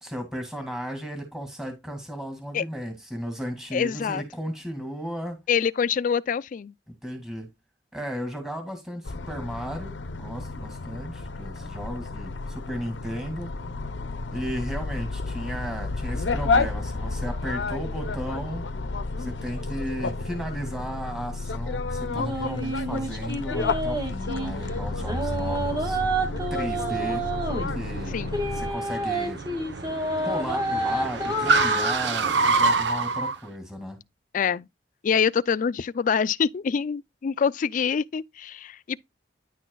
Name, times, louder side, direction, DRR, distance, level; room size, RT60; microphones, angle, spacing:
voice 1, 0.0-5.4 7.0-7.5 7.9-13.5 14.3-18.7 19.2-26.0 26.5-27.2 27.7-28.2 28.5-29.4 30.2-34.0, equal, 5° right, 2.0 m, -35 dB
voice 2, 3.7-4.2 5.5-6.7 28.1-28.4 34.3-34.7 35.0-39.0, left 7 dB, 45° left, 0.3 m, -25 dB
sound 1, 9.1-28.7, left 3 dB, 80° left, 0.7 m, -31 dB
sound 2, 22.1-24.5 25.0-27.7 28.3-31.9, right 1 dB, 25° right, 2.2 m, -29 dB
Car, 24.4-33.4, right 3 dB, 75° right, 0.9 m, -28 dB
10.0 x 6.2 x 2.3 m
head